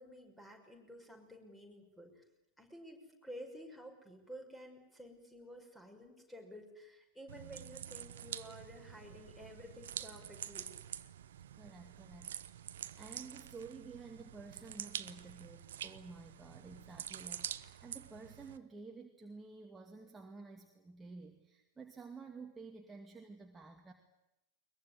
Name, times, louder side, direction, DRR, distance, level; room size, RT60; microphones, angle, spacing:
voice 1, 0.0-2.2 2.6-10.7, equal, 5° left, 4 dB, 5.9 m, -52 dB
sound 1, 7.3-18.6, right 10 dB, 60° right, 0.9 m, -47 dB
voice 2, 11.5-23.9, right 4 dB, 10° right, 2 dB, 2.3 m, -52 dB
22.0 x 21.5 x 9.8 m, 0.91 s
figure-of-eight pair, 90°, 0 cm